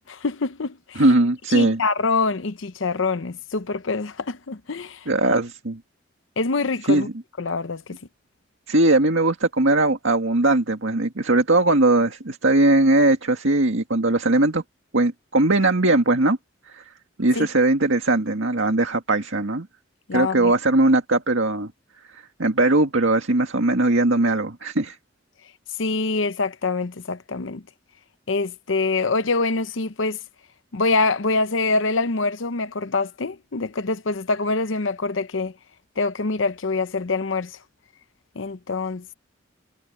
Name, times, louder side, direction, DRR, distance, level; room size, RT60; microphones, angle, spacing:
voice 1, 0.1-1.0 1.5-5.1 6.4-7.1 7.4-8.0 17.3-17.5 20.1-20.5 25.8-27.6 28.3-30.2 30.7-35.5 36.0-37.6 38.4-39.1, left 3 dB, 75° left, 0.8 m, -25 dB
voice 2, 1.0-1.8 5.1-5.8 6.9-7.1 8.7-14.6 14.9-16.4 16.7-16.8 17.2-19.7 20.1-21.7 22.1-25.0, right 2 dB, 75° right, 1.9 m, -20 dB
head